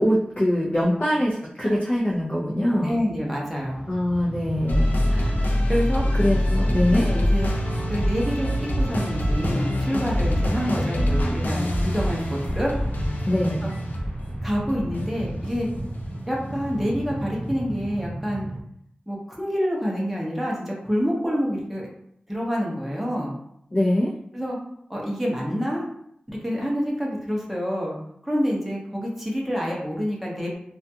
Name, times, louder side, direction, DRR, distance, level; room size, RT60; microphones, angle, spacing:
voice 1, 0.0-3.0 3.9-4.9 6.2-7.1 13.3-13.6 23.7-24.1, left 1 dB, 35° left, -6 dB, 0.5 m, -23 dB
voice 2, 2.8-3.8 4.8-5.4 5.7-6.1 6.9-7.6 7.9-12.7 13.6-13.7 14.4-15.7 16.3-18.5 19.1-21.9 22.3-23.3 24.3-24.6 24.9-25.9 26.3-28.0 28.2-30.5, equal, 5° right, -4 dB, 0.7 m, -27 dB
Train, 3.5-18.6, right 1 dB, 35° right, 0.3 m, -33 dB
sound 1, 4.7-17.1, left 1 dB, 90° left, 0.4 m, -25 dB
2.4 x 2.2 x 2.7 m, 0.71 s
wide cardioid pair, 65°, 3 cm